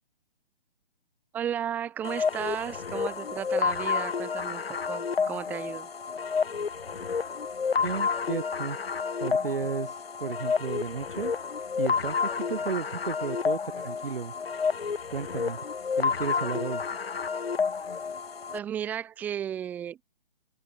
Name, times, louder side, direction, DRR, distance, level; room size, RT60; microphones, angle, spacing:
voice 1, 1.3-5.9 18.5-20.0, right 9 dB, 5° right, 1.2 m, -34 dB
sound 1, 2.0-18.6, left 5 dB, 90° left, 2.0 m, -30 dB
voice 2, 7.8-8.8 9.2-11.3 11.8-14.3 15.1-15.6 16.0-16.8, right 5 dB, 65° right, 6.4 m, -33 dB
open air
hypercardioid pair, 170°, 29 cm